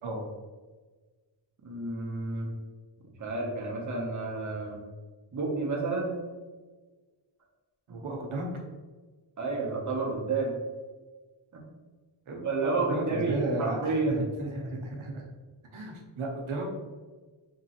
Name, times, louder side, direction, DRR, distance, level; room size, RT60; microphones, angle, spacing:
voice 1, 1.6-2.5 3.2-4.8 5.3-6.2 7.9-8.0 9.4-10.6 12.4-14.2, right 3 dB, 40° right, -1 dB, 0.8 m, -30 dB
voice 2, 7.9-8.5 12.3-15.2 15.7-16.7, right 2 dB, 85° right, 0 dB, 0.8 m, -34 dB
3.7 x 2.9 x 2.8 m, 1.3 s
wide cardioid pair, 130°, 48 cm